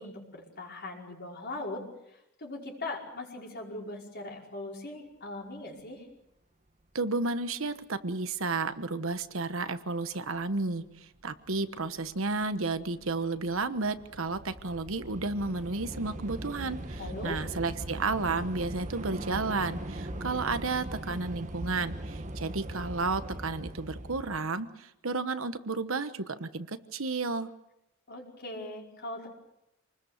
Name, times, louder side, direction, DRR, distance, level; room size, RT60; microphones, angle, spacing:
voice 1, 0.0-1.8 2.4-6.1 17.0-17.4 28.1-29.3, left 2 dB, 50° left, -1 dB, 5.3 m, -40 dB
voice 2, 6.9-10.8 11.2-27.5, right 3 dB, 75° right, 10 dB, 1.2 m, -32 dB
Train / Subway metro underground, 11.5-11.6 11.8-24.4, right 1 dB, 35° right, 1.5 m, -40 dB
27.5 x 20.5 x 6.6 m, 0.87 s
head